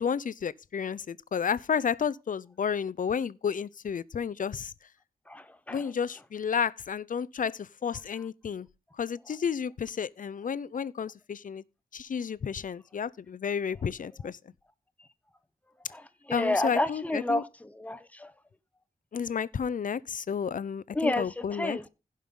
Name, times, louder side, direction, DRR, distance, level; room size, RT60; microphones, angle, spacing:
voice 1, 0.0-4.7 5.7-8.7 8.9-11.6 11.9-14.5 16.3-17.4 19.1-21.8, left 7 dB, 60° left, 0.5 m, -31 dB
voice 2, 5.3-5.8 15.9-16.0 16.3-18.3 20.9-21.8, left 1 dB, 10° left, 0.9 m, -30 dB
16.0 x 5.5 x 3.7 m
wide cardioid pair, 95°, 16 cm